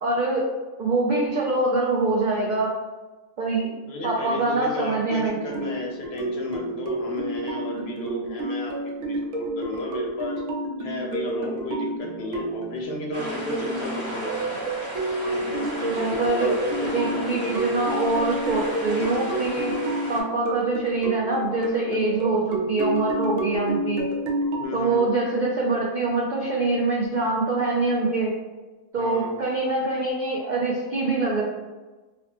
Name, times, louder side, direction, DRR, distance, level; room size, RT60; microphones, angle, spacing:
voice 1, 0.0-0.5 0.8-2.7 3.4-3.7 4.0-5.4 15.9-19.7 20.1-24.1 24.7-28.3 28.9-31.4, right 3 dB, 65° right, -4 dB, 0.4 m, -24 dB
voice 2, 3.9-10.4 10.8-14.3 15.2-16.5 16.9-17.6 24.6-25.1 29.0-29.3, equal, 60° left, -1 dB, 0.8 m, -33 dB
sound 1, 5.3-24.6, right 1 dB, 85° right, 1.0 m, -30 dB
sound 2, 13.1-20.2, equal, 45° right, 1.2 m, -35 dB
4.1 x 2.0 x 2.8 m, 1.2 s
omnidirectional pair, 1.3 m